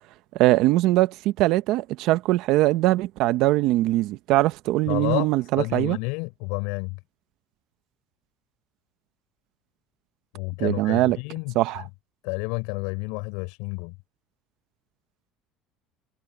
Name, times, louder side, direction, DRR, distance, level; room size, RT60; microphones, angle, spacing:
voice 1, 0.3-6.0 10.6-11.2 11.5-11.8, right 17 dB, 65° right, 0.8 m, -21 dB
voice 2, 4.9-5.3 5.6-7.0 10.3-11.8 12.2-13.9, left 30 dB, 80° left, 6.2 m, -30 dB
cardioid pair, 125°, 0 cm